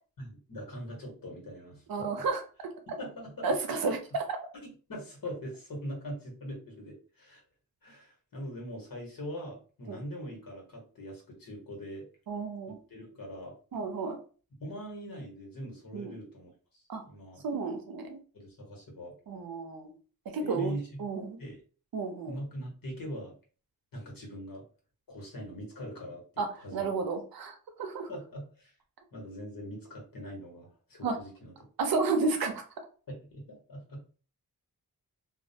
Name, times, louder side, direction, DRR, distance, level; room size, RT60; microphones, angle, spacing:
voice 1, 0.2-2.3 2.9-3.5 3.8-3.9 4.6-7.4 7.8-12.1 12.9-13.5 14.6-17.4 18.3-19.1 20.4-21.1 21.4-21.6 22.2-23.3 23.9-24.6 25.1-26.9 28.1-28.7 29.1-31.5 33.3-34.0, equal, 70° left, -1 dB, 1.2 m, -42 dB
voice 2, 1.9-2.7 3.4-4.4 9.9-10.0 12.3-12.8 13.7-14.2 15.9-16.1 16.9-17.0 17.4-18.2 19.3-19.9 20.3-20.7 21.0-21.4 21.9-22.4 26.4-26.5 26.7-28.1 31.0-31.2 31.8-32.6, right 4 dB, 75° right, 5 dB, 0.6 m, -31 dB
2.3 x 2.1 x 2.7 m, 0.38 s
cardioid pair, 60°, 35 cm